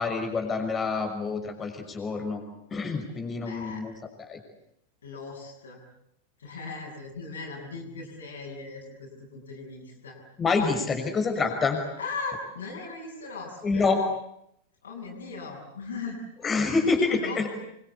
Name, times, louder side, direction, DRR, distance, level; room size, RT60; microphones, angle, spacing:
voice 1, 0.0-2.4 2.7-3.9 4.3-4.4 10.4-11.8 13.6-14.0 16.4-17.5, left 4 dB, 20° left, 5 dB, 6.4 m, -27 dB
voice 2, 3.4-3.8 5.0-5.8 6.4-10.2 12.0-13.9 14.8-16.2 17.0-17.5, left 4 dB, 65° left, -1 dB, 7.5 m, -38 dB
28.5 x 24.5 x 8.4 m, 0.77 s
figure-of-eight pair, 90°, 0 cm